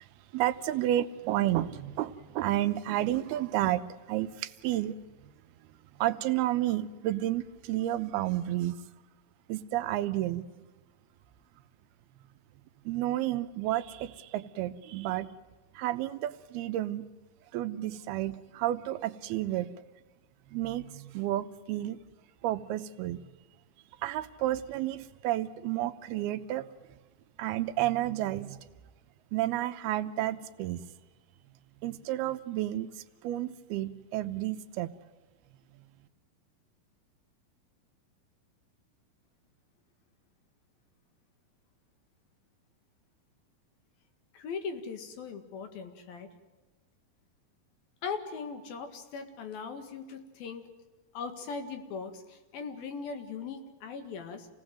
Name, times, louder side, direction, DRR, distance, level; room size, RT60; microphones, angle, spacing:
voice 1, 0.3-3.8 4.1-5.0 6.0-8.8 9.5-10.5 12.9-15.3 15.8-17.1 17.5-19.7 20.5-22.0 22.4-23.2 24.0-26.7 27.4-28.6 29.3-30.8 31.8-32.9 33.2-34.9, right 14 dB, 90° right, 11 dB, 2.9 m, -31 dB
voice 2, 44.3-46.3 48.0-50.7 51.1-54.5, left 5 dB, 70° left, 7 dB, 3.7 m, -39 dB
28.0 x 18.0 x 7.7 m, 1.2 s
omnidirectional pair, 4.4 m